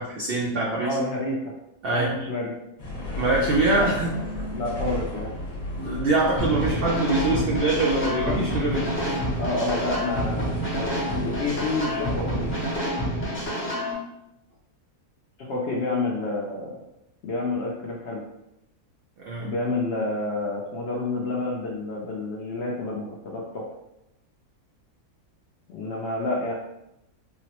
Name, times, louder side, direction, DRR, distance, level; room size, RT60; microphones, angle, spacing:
voice 1, 0.0-0.9 1.8-2.2 3.2-4.2 5.7-9.2 19.3-19.5, right 2 dB, 80° right, -4 dB, 0.5 m, -24 dB
voice 2, 0.8-1.5 1.9-2.5 4.5-5.3 9.3-12.5 15.4-16.8 17.2-18.2 19.4-23.7 25.7-26.5, left 2 dB, 70° left, -3 dB, 0.6 m, -29 dB
sound 1, 2.8-12.6, left 1 dB, 50° left, 1.0 m, -34 dB
sound 2, 6.4-13.9, equal, 15° left, 0.4 m, -28 dB
3.8 x 2.0 x 2.8 m, 0.86 s
omnidirectional pair, 1.6 m